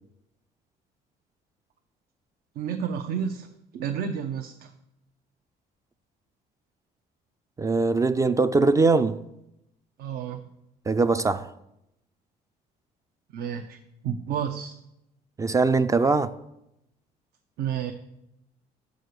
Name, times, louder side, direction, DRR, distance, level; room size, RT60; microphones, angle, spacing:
voice 1, 2.6-3.5 3.7-4.7 10.0-10.4 13.3-13.8 14.0-14.7 17.6-17.9, right 8 dB, 70° right, 0.7 m, -30 dB
voice 2, 7.6-9.2 10.9-11.5 15.4-16.3, right 3 dB, 20° right, 0.3 m, -21 dB
6.3 x 5.6 x 6.7 m
cardioid pair, 110°, 17 cm